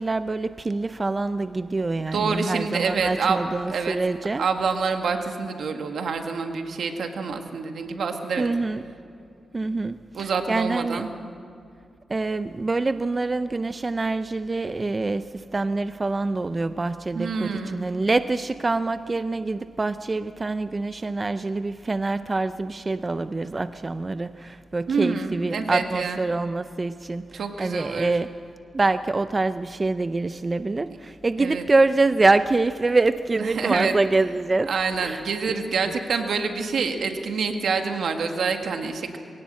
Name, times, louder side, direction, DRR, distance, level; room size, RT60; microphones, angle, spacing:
voice 1, 0.0-4.5 8.4-8.8 9.5-11.1 12.1-28.4 28.7-34.7 35.0-35.6, right 3 dB, 25° right, 12 dB, 0.4 m, -25 dB
voice 2, 2.1-3.4 3.7-4.0 4.4-8.5 10.1-11.1 17.1-17.8 24.9-26.2 27.3-28.1 31.4-31.6 33.5-33.9 34.7-39.2, right 5 dB, 75° right, 5 dB, 1.7 m, -27 dB
22.0 x 17.5 x 7.5 m, 2.4 s
wide cardioid pair, 110°, 0 cm